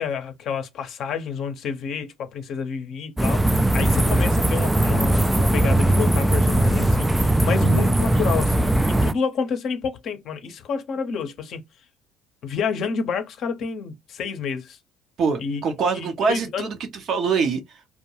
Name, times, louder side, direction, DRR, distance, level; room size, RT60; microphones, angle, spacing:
voice 1, 0.0-11.6 12.4-14.8 15.4-15.6 15.9-16.7, left 5 dB, 55° left, 0.6 m, -29 dB
sound 1, 3.2-9.1, right 1 dB, 10° right, 0.3 m, -19 dB
voice 2, 15.2-17.6, right 5 dB, 55° right, 0.7 m, -24 dB
2.2 x 2.2 x 2.9 m
hypercardioid pair, 65°, 0 cm